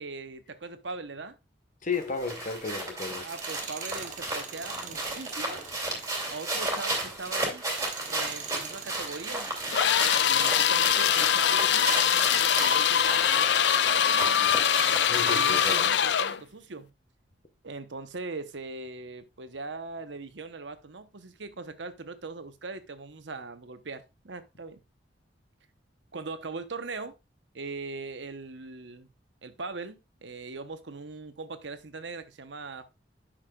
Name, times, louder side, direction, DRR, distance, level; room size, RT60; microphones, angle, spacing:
voice 1, 0.0-1.4 3.1-5.7 6.3-7.6 8.1-9.5 10.2-14.5 15.1-16.9 17.6-24.8 26.1-27.1 27.5-29.1 29.4-32.9, right 3 dB, 80° right, 0.9 m, -40 dB
voice 2, 1.8-3.3 15.0-15.9, left 4 dB, 45° left, 1.3 m, -33 dB
sound 1, 1.9-16.0, right 2 dB, 20° right, 2.4 m, -34 dB
Tools, 3.2-11.4 11.8-16.0, right 7 dB, 45° right, 0.9 m, -44 dB
sound 2, 9.7-16.4, left 9 dB, 65° left, 0.5 m, -23 dB
9.9 x 6.2 x 2.4 m
head